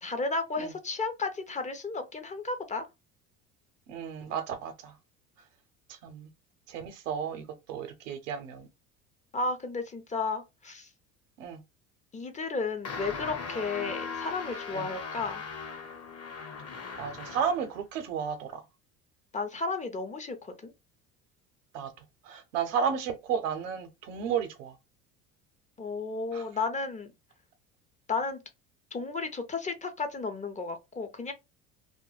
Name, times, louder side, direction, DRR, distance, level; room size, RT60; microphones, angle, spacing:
voice 1, 0.0-2.8 9.3-10.9 12.1-15.4 19.3-20.4 20.6-20.7 25.8-27.1 28.1-28.4 28.9-31.3, left 3 dB, 20° left, 0.5 m, -33 dB
voice 2, 3.9-4.9 6.0-6.3 6.7-7.4 7.7-8.7 11.4-11.6 14.7-14.9 17.0-18.6 21.7-21.9 22.3-24.7 26.3-26.5, right 7 dB, 80° right, 0.7 m, -32 dB
sound 1, 12.8-17.7, left 5 dB, 40° left, 0.9 m, -39 dB
2.2 x 2.2 x 3.1 m
hypercardioid pair, 75°, 38 cm